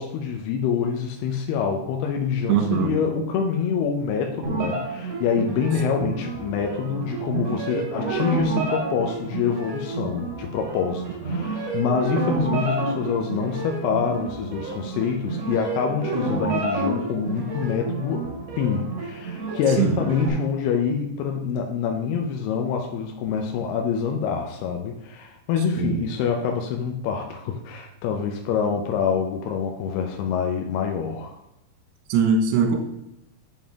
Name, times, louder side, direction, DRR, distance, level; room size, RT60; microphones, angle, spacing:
voice 1, 0.0-18.3 18.6-31.4, left 6 dB, 80° left, 2 dB, 2.3 m, -26 dB
voice 2, 2.5-2.9 19.8-20.0 25.8-26.0 32.1-32.8, right 6 dB, 70° right, 3 dB, 2.9 m, -21 dB
sound 1, 4.4-20.3, right 3 dB, 50° right, 2.3 m, -30 dB
7.3 x 7.3 x 3.5 m, 0.87 s
omnidirectional pair, 5.4 m